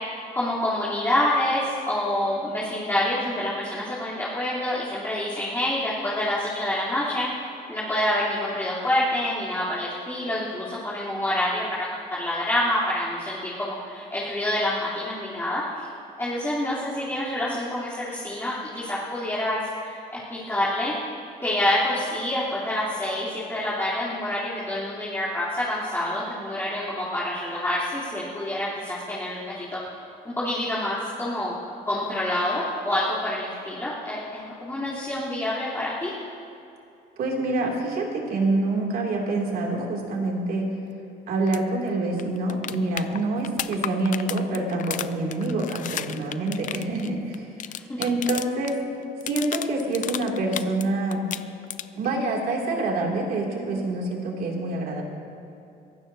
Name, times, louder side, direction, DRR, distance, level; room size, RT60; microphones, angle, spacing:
voice 1, 0.3-7.3 7.7-15.9 16.2-21.0 21.4-30.0 30.2-31.5 31.9-36.1 47.9-48.0, left 1 dB, 15° left, -10 dB, 3.5 m, -27 dB
voice 2, 37.2-40.7 41.3-47.7 48.0-48.8 49.3-51.2 52.0-55.0, right 2 dB, 65° right, -1 dB, 2.8 m, -26 dB
sound 1, 41.5-41.6 41.9-42.0 42.2-48.7 49.0-50.9 51.1-52.1 54.1-54.2, left 11 dB, 50° left, 0.5 m, -33 dB
23.0 x 16.0 x 2.8 m, 2.8 s
cardioid pair, 110°, 17 cm